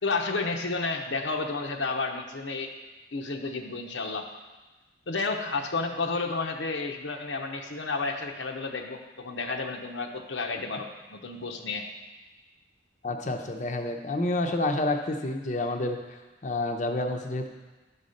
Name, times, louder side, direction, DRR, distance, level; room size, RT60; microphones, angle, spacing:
voice 1, 0.0-2.7 3.1-4.3 5.1-11.9, left 3 dB, 85° left, 2 dB, 0.8 m, -31 dB
voice 2, 13.0-16.0 16.4-17.5, left 2 dB, 40° left, 3 dB, 0.7 m, -29 dB
11.0 x 4.1 x 6.5 m, 1.2 s
head